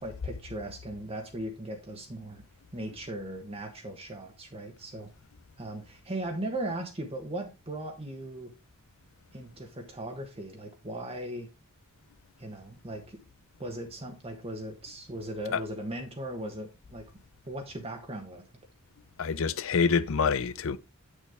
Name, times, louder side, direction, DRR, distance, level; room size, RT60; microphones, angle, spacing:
voice 1, 0.0-2.4 2.7-5.1 5.6-8.5 9.3-11.5 12.4-13.2 13.6-17.1 17.5-18.4, right 1 dB, 25° right, 1.2 m, -38 dB
voice 2, 19.2-20.8, left 5 dB, 65° left, 0.6 m, -26 dB
8.5 x 6.5 x 3.5 m
head